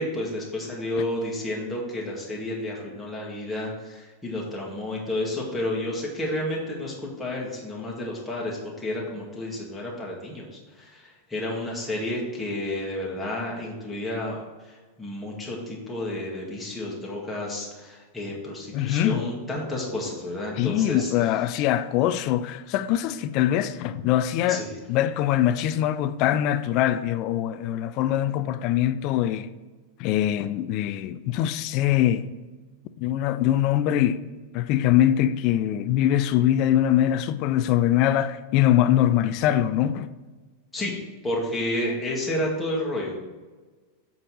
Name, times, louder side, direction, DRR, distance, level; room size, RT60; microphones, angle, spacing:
voice 1, 0.0-21.1 21.6-21.8 24.5-24.8 40.7-40.9 41.2-43.2, left 1 dB, 5° left, 1.7 m, -31 dB
voice 2, 18.7-19.2 20.6-29.5 30.0-32.3 33.0-34.3 34.5-40.1, left 12 dB, 40° left, 0.3 m, -23 dB
7.5 x 4.0 x 6.1 m
figure-of-eight pair, 90°, 0 cm